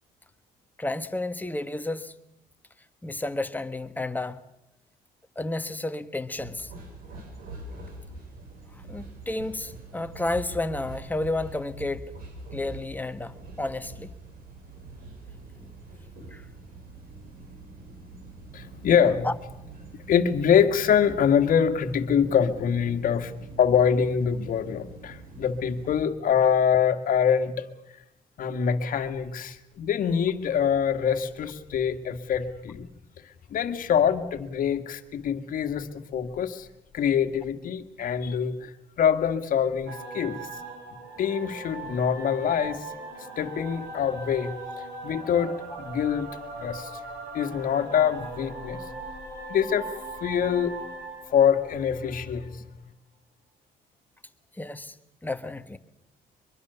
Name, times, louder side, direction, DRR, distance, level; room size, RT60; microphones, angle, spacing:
voice 1, 0.8-2.1 3.0-4.4 5.4-6.7 8.9-12.1 12.5-14.1 16.3-16.4 19.2-19.3 54.6-54.9 55.2-55.8, left 2 dB, 10° left, 1.3 m, -31 dB
sound 1, 6.4-26.0, right 2 dB, 60° right, 6.8 m, -44 dB
voice 2, 18.5-19.3 20.1-23.3 23.6-27.7 28.4-32.9 33.5-36.7 36.9-38.7 39.0-40.5 41.2-42.8 43.4-44.5 45.0-46.3 46.6-46.9 47.3-48.8 49.5-49.9 50.2-50.7 51.3-52.6, left 8 dB, 55° left, 1.8 m, -24 dB
sound 2, 39.9-52.4, right 3 dB, 80° right, 6.7 m, -40 dB
23.5 x 23.0 x 6.9 m
cardioid pair, 110°, 17 cm